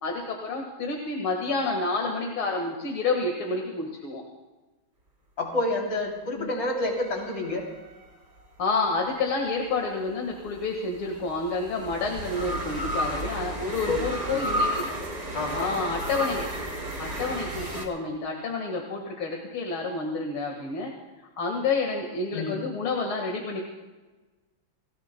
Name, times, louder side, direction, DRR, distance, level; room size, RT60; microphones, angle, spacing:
voice 1, 0.0-4.2 6.4-6.5 8.6-14.8 15.5-16.5 17.0-20.9 21.4-23.6, left 3 dB, 85° left, 1 dB, 2.6 m, -29 dB
voice 2, 5.4-7.6 13.8-14.0 14.3-14.6 15.3-15.7 22.3-22.6, left 2 dB, 60° left, -1 dB, 3.8 m, -29 dB
sound 1, 6.9-8.5 10.3-17.9, equal, 60° right, 4.7 m, -33 dB
29.5 x 17.5 x 2.2 m, 1.2 s
omnidirectional pair, 2.2 m